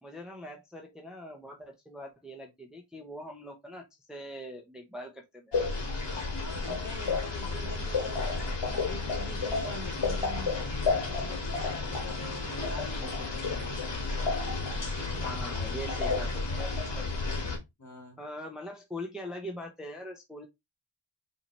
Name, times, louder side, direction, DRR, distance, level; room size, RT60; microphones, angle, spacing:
voice 1, 0.0-5.5 15.1-17.1 18.2-20.5, equal, ahead, 0.8 m, -42 dB
sound 1, 5.5-17.6, left 3 dB, 60° left, 1.6 m, -31 dB
voice 2, 6.3-8.3 8.6-14.0 17.8-18.2, left 1 dB, 35° left, 2.0 m, -44 dB
5.6 x 2.8 x 3.2 m
wide cardioid pair, 75°, 48 cm